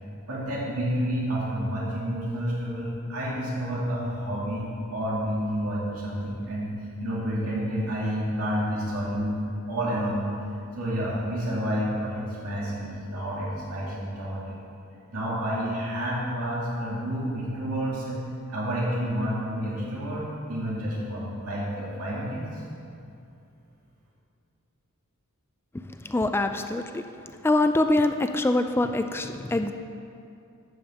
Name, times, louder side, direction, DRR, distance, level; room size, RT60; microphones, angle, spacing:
voice 1, 0.3-9.4 9.7-10.3 10.8-14.6 15.1-18.2 18.5-22.6, equal, 90° right, -6 dB, 2.4 m, -29 dB
voice 2, 26.0-27.0 27.4-29.7, left 2 dB, 10° left, 7 dB, 0.3 m, -24 dB
12.5 x 5.2 x 7.2 m, 2.5 s
head